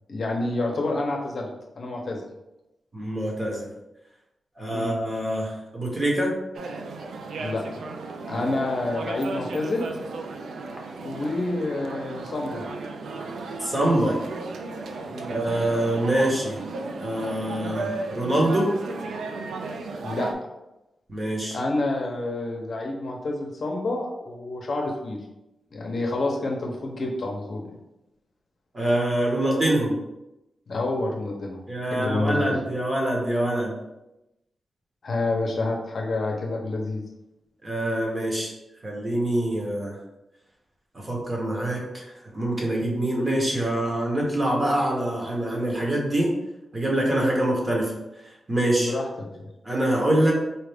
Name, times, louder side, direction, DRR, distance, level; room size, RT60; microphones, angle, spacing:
voice 1, 0.1-1.5 1.8-2.2 4.7-4.9 7.3-7.8 8.3-9.8 11.0-12.6 15.0-15.3 20.0-20.3 21.5-25.2 25.7-27.6 30.7-32.5 35.0-37.0 48.8-49.4, left 2 dB, 50° left, 0 dB, 0.7 m, -28 dB
voice 2, 2.9-3.7 4.6-6.4 8.3-8.4 13.6-14.2 15.3-16.6 17.0-18.8 21.1-21.6 28.7-30.0 31.7-33.7 37.6-38.5 38.8-40.0 40.9-46.3 46.7-47.9 48.5-48.9 49.6-50.3, right 1 dB, 25° right, -2 dB, 0.9 m, -25 dB
sound 1, 6.5-20.3, right 3 dB, 85° right, 0.4 m, -35 dB
4.2 x 2.5 x 3.4 m, 0.93 s
wide cardioid pair, 145°, 0 cm